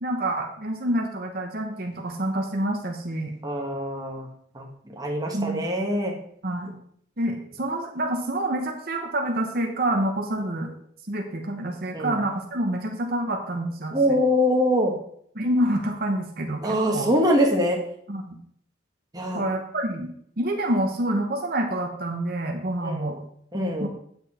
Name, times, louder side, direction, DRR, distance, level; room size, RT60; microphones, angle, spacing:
voice 1, 0.0-3.3 5.3-5.7 6.4-6.7 7.2-10.7 11.1-14.2 15.3-17.1 18.1-18.4 19.3-20.1 20.4-23.2 23.8-23.9, right 1 dB, 50° right, 2 dB, 1.0 m, -27 dB
voice 2, 3.4-4.3 4.5-6.1 11.9-12.2 13.9-14.9 16.6-17.8 19.1-19.4 22.8-23.1 23.5-23.9, equal, 20° right, 0 dB, 1.4 m, -23 dB
8.8 x 8.0 x 4.2 m, 0.66 s
head